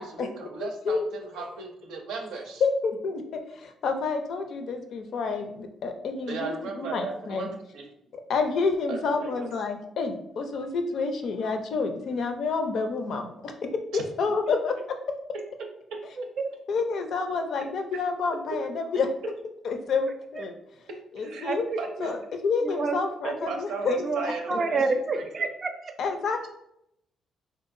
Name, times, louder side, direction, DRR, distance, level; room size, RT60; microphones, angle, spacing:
voice 1, 0.0-2.6 6.3-7.9 8.9-9.5 13.9-14.0 15.9-16.0 21.2-21.5 21.8-22.2 23.2-24.8 25.1-25.4, right 4 dB, 85° right, 2 dB, 0.6 m, -36 dB
voice 2, 0.6-1.0 1.4-1.5 2.6-7.5 8.3-13.7 14.2-14.8 16.7-19.1 19.6-20.5 21.2-21.6 22.0-22.2 22.4-24.6 26.0-26.5, left 4 dB, 65° left, 6 dB, 0.4 m, -29 dB
voice 3, 16.2-16.5 20.4-20.5 21.4-22.1 22.6-23.0 24.0-24.2 24.5-25.9, right 4 dB, 40° right, 6 dB, 0.5 m, -29 dB
3.4 x 2.7 x 2.5 m, 0.78 s
cardioid pair, 90°, 0 cm